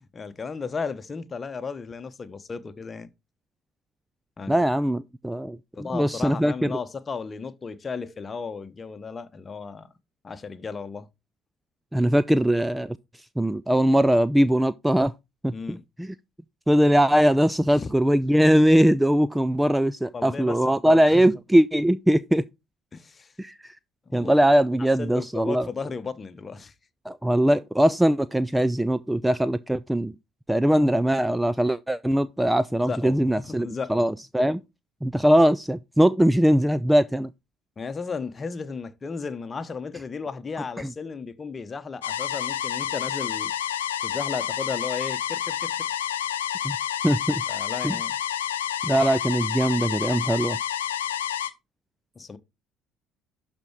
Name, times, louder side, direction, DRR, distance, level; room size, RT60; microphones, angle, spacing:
voice 1, 0.0-3.1 4.4-4.5 5.7-9.9 10.2-11.1 15.5-15.8 17.7-17.9 20.1-20.6 20.8-21.3 22.9-23.3 24.1-24.3 25.0-26.7 32.8-34.0 37.8-43.5 44.0-45.9 47.5-48.2 52.1-52.4, left 5 dB, 30° left, 1.1 m, -34 dB
voice 2, 4.5-6.8 11.9-13.0 13.4-15.1 15.4-16.1 16.7-22.5 23.4-23.7 24.1-25.7 27.1-30.1 30.5-34.6 35.0-37.3 40.8-40.9 46.6-46.8 47.0-47.4 47.8-48.0 48.8-50.6, equal, 5° right, 0.4 m, -21 dB
sound 1, 42.0-51.5, left 10 dB, 75° left, 0.7 m, -29 dB
12.0 x 4.4 x 4.7 m
figure-of-eight pair, 55°, 0 cm